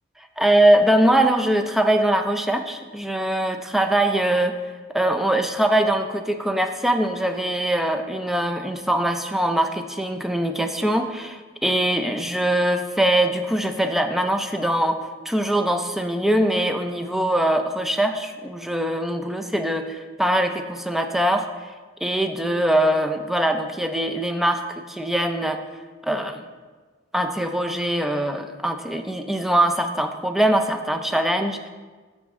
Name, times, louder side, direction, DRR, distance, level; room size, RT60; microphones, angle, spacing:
voice 1, 0.4-4.6 4.9-21.5 22.0-25.6 26.0-26.4 27.1-31.7, right 1 dB, ahead, 6 dB, 0.4 m, -22 dB
12.0 x 4.2 x 3.5 m, 1.4 s
head